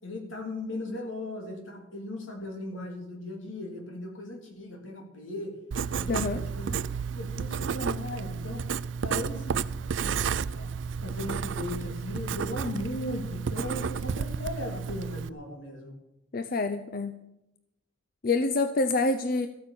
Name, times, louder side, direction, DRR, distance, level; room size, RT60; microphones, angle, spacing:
voice 1, 0.0-5.5 5.9-6.8 7.1-8.7 9.0-9.6 10.0-10.7 11.0-15.9, left 1 dB, 80° left, 1 dB, 3.4 m, -37 dB
Writing, 5.7-15.3, right 6 dB, 70° right, 0.4 m, -32 dB
voice 2, 6.1-6.4 16.3-17.1 18.2-19.5, left 3 dB, 50° left, 9 dB, 0.6 m, -27 dB
14.0 x 8.8 x 6.9 m, 0.88 s
head